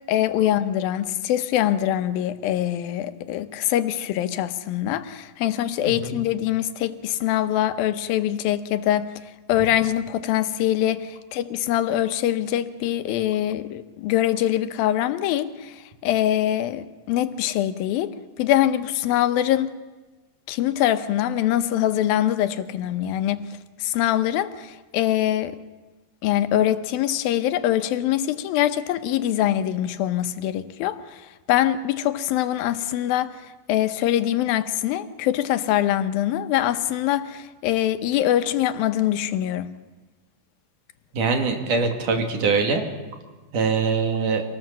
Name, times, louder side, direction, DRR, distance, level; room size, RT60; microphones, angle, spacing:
voice 1, 0.1-9.1 9.5-15.8 16.0-18.1 18.4-19.7 20.5-23.4 23.8-25.6 26.2-31.2 31.5-33.4 33.7-39.7, left 12 dB, 85° left, 2.7 m, -23 dB
voice 2, 41.1-42.8 43.5-44.4, right 4 dB, 65° right, 3.8 m, -23 dB
25.5 x 18.5 x 7.5 m
omnidirectional pair, 4.1 m